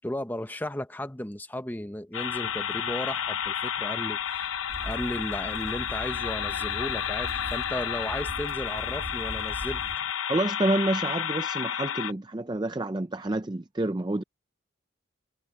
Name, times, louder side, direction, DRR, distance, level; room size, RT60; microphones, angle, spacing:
voice 1, 0.0-4.6 4.8-9.8, left 1 dB, 10° left, 0.9 m, -35 dB
sound 1, 2.1-12.1, left 9 dB, 90° left, 0.9 m, -31 dB
Water / Drip, 2.2-10.1, equal, 30° left, 6.8 m, -56 dB
sound 2, 4.7-10.0, equal, 50° right, 2.1 m, -41 dB
voice 2, 10.3-14.2, right 2 dB, 20° right, 0.5 m, -28 dB
head